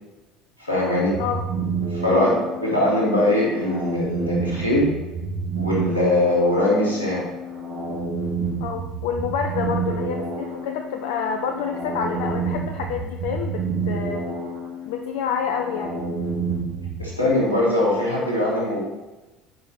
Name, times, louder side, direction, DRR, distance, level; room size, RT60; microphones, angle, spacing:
voice 1, 0.6-1.1 1.9-2.3 2.6-4.9 5.6-7.2 17.0-18.8, left 1 dB, 85° left, -6 dB, 2.6 m, -21 dB
sound 1, 1.0-17.1, right 4 dB, 55° right, 2.4 m, -29 dB
voice 2, 8.6-14.2 14.8-15.9, left 7 dB, 65° left, 4 dB, 0.5 m, -28 dB
9.4 x 5.4 x 4.5 m, 1.1 s
figure-of-eight pair, 65°, 0 cm